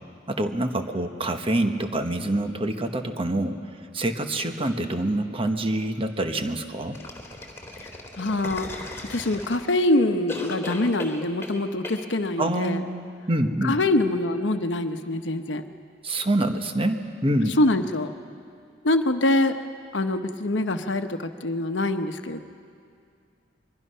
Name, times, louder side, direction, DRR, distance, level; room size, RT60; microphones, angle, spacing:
voice 1, 0.3-3.6 3.9-7.0 12.4-13.7 16.0-17.6, right 1 dB, 30° right, 6 dB, 1.1 m, -26 dB
sound 1, 6.9-9.8 10.3-11.6 11.8-12.0, left 2 dB, 15° left, 2.4 m, -37 dB
voice 2, 8.2-8.7 9.1-12.8 13.6-15.6 17.6-18.1 18.8-19.6 19.9-22.4, left 1 dB, 75° left, 8 dB, 1.0 m, -24 dB
24.0 x 23.0 x 5.6 m, 2.3 s
head